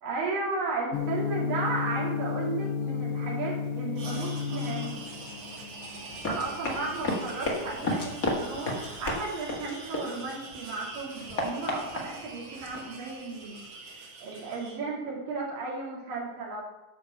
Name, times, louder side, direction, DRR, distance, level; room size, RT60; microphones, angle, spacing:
voice 1, 0.0-5.0 6.3-16.6, right 3 dB, 65° right, -4 dB, 4.3 m, -34 dB
Gong, 0.9-9.0, left 6 dB, 75° left, 2.5 m, -33 dB
sound 1, 4.0-14.8, right 3 dB, 85° right, 4.4 m, -44 dB
Run, 6.1-10.5 10.9-12.8, left 2 dB, 45° left, 1.0 m, -33 dB
12.5 x 5.2 x 7.0 m, 1.1 s
omnidirectional pair, 4.4 m